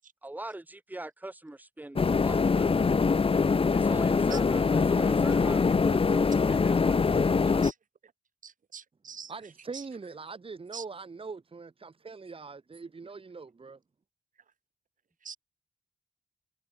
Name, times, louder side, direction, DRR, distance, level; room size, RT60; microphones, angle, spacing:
voice 1, 0.2-2.7 3.7-6.9, right 1 dB, 10° right, 1.5 m, -42 dB
sound 1, 2.0-7.7, left 4 dB, 40° left, 1.1 m, -24 dB
voice 2, 8.4-9.3 10.7-10.8 15.2-15.4, right 6 dB, 70° right, 2.6 m, -43 dB
voice 3, 9.3-13.8, right 4 dB, 40° right, 1.7 m, -42 dB
cardioid pair, 75°, 14 cm